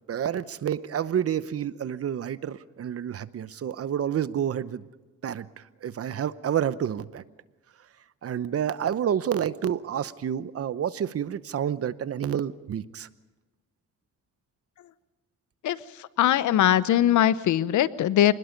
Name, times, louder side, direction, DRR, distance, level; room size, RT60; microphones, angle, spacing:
voice 1, 0.1-4.8 5.2-5.5 5.8-7.2 8.2-13.1, right 9 dB, 50° right, 16 dB, 0.9 m, -29 dB
voice 2, 16.2-18.3, left 11 dB, 75° left, 16 dB, 0.9 m, -21 dB
26.5 x 20.5 x 5.3 m, 1.2 s
cardioid pair, 90°, 30 cm